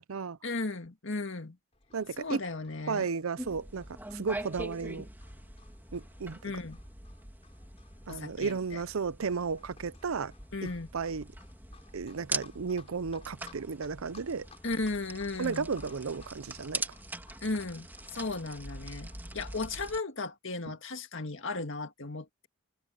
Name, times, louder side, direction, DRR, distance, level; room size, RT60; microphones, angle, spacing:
voice 1, 0.4-1.6 2.2-3.1 6.4-6.8 8.1-8.8 10.5-10.9 14.6-15.7 17.4-17.9 18.1-22.5, left 3 dB, 60° left, 1.9 m, -35 dB
Livestock farm animals working animals, 1.7-19.8, left 4 dB, 30° left, 4.4 m, -59 dB
voice 2, 1.9-2.4 2.9-5.1 5.9-6.4 8.1-10.3 10.6-11.3 11.9-14.5 15.4-16.8 20.7-20.8, right 5 dB, 75° right, 0.6 m, -34 dB
sound 1, 3.4-20.0, right 2 dB, 10° right, 2.8 m, -43 dB
head